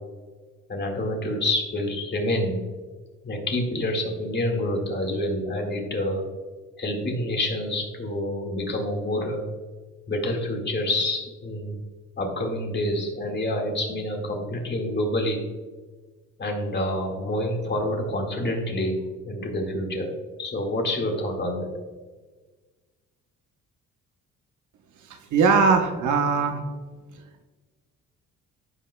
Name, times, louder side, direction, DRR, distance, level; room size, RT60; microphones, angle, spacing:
voice 1, 0.7-2.6 3.2-6.3 6.8-9.5 10.1-11.8 12.2-15.5 16.4-20.1 20.4-21.7, left 1 dB, 35° left, 2 dB, 1.9 m, -27 dB
voice 2, 25.1-26.6, right 5 dB, 75° right, 5 dB, 1.1 m, -20 dB
14.5 x 5.5 x 2.3 m, 1.4 s
cardioid pair, 90°, 30 cm